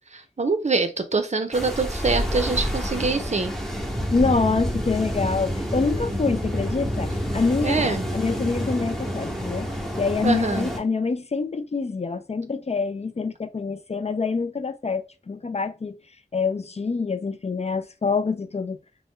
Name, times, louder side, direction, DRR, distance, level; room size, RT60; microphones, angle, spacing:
voice 1, 0.1-3.5 7.6-8.0 10.2-10.7, right 3 dB, 45° right, 0.5 m, -24 dB
sound 1, 1.5-10.8, equal, ahead, 0.9 m, -28 dB
voice 2, 4.1-9.7 10.0-15.9 16.3-18.8, left 4 dB, 40° left, 0.4 m, -26 dB
2.5 x 2.1 x 3.6 m
wide cardioid pair, 55°, 16 cm